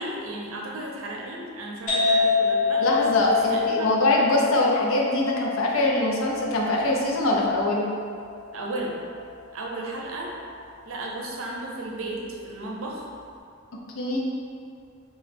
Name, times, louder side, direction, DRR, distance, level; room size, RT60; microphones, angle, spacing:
voice 1, 0.0-2.8 3.3-4.0 8.5-9.0 9.5-10.3 10.8-13.1, right 1 dB, 90° right, -1 dB, 0.6 m, -34 dB
sound 1, 1.9-9.3, left 5 dB, 40° left, 0.7 m, -27 dB
voice 2, 2.8-7.9 13.9-14.2, left 1 dB, 80° left, -2 dB, 0.6 m, -23 dB
3.0 x 2.3 x 4.2 m, 2.4 s
head